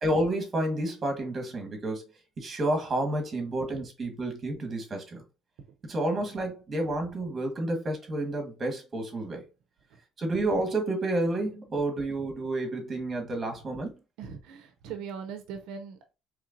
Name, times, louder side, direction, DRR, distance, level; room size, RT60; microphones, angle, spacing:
voice 1, 0.0-2.0 2.4-5.2 5.9-9.4 10.2-13.9, right 1 dB, 25° right, 1.3 m, -30 dB
voice 2, 14.2-16.1, right 6 dB, 75° right, 0.6 m, -40 dB
4.3 x 3.2 x 2.5 m
cardioid pair, 145°, 0 cm